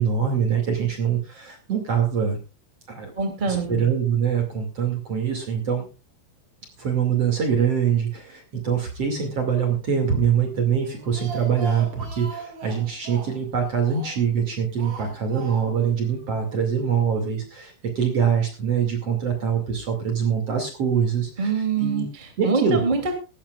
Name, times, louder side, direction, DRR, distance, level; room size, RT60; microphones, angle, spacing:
voice 1, 0.0-2.4 2.9-3.1 3.5-5.9 6.8-21.5 21.8-22.1 22.4-22.8, right 7 dB, 40° right, 4 dB, 2.6 m, -24 dB
voice 2, 3.1-3.8 21.4-23.1, right 4 dB, 15° right, 5 dB, 1.5 m, -25 dB
Speech, 10.8-14.4 14.8-15.9 16.2-16.3 16.6-16.7, right 4 dB, 65° right, 6.9 m, -39 dB
18.0 x 13.5 x 2.4 m, 0.30 s
omnidirectional pair, 5.7 m